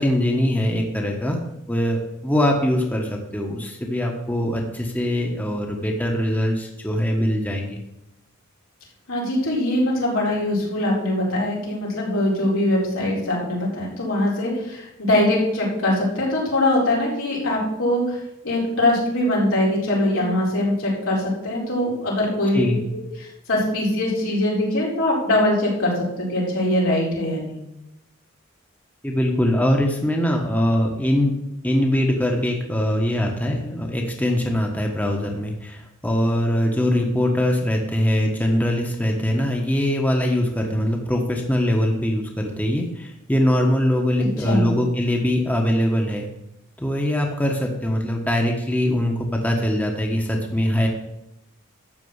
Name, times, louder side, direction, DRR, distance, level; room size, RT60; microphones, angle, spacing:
voice 1, 0.0-1.4 1.7-7.8 22.5-22.8 29.0-31.3 31.6-46.3 46.8-50.9, left 1 dB, 10° left, 1 dB, 1.2 m, -22 dB
voice 2, 9.1-22.6 23.2-27.5 44.2-44.7, left 1 dB, 90° left, -5 dB, 4.6 m, -22 dB
12.5 x 4.5 x 8.1 m, 0.85 s
head